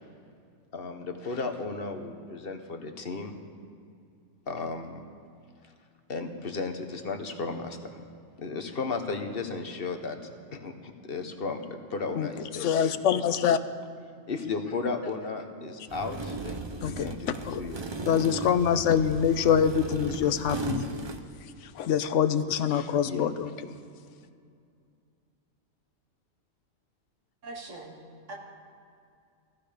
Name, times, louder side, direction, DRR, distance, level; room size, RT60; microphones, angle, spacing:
voice 1, 0.7-3.3 4.5-5.0 6.1-8.0 8.4-10.2 10.5-13.3 14.3-18.2 22.7-23.3, left 4 dB, 50° left, 6 dB, 1.3 m, -35 dB
voice 2, 12.6-13.6 16.8-17.6 18.1-20.9 21.8-23.5, left 8 dB, 70° left, 12 dB, 1.0 m, -25 dB
sound 1, 15.9-21.2, right 3 dB, 30° right, 0.6 m, -36 dB
voice 3, 27.4-28.3, right 2 dB, 65° right, 0 dB, 2.3 m, -42 dB
16.5 x 15.0 x 5.1 m, 2.4 s
omnidirectional pair, 1.4 m